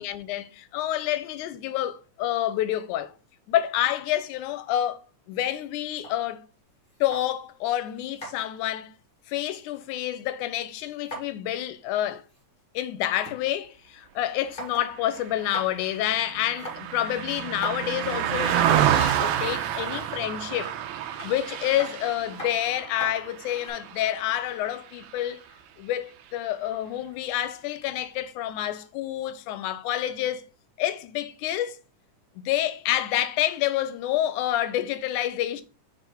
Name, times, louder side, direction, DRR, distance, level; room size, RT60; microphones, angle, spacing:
voice 1, 0.0-3.1 3.5-5.0 5.3-6.5 7.0-8.9 9.3-12.2 12.7-20.8 21.2-25.4 25.8-30.4 30.8-31.8 32.4-35.6, left 12 dB, 90° left, 2.1 m, -28 dB
sound 1, 5.3-7.6 7.9-10.1 10.4-11.5 11.8-11.9 12.1-13.4 13.8-13.9 14.3-15.0 15.2-15.9 16.4-18.4 19.4-19.9 21.1-23.7, equal, 20° left, 1.6 m, -42 dB
Car passing by, 15.1-24.6 25.0-25.2, right 10 dB, 75° right, 1.9 m, -28 dB
4.8 x 4.7 x 4.5 m
omnidirectional pair, 3.5 m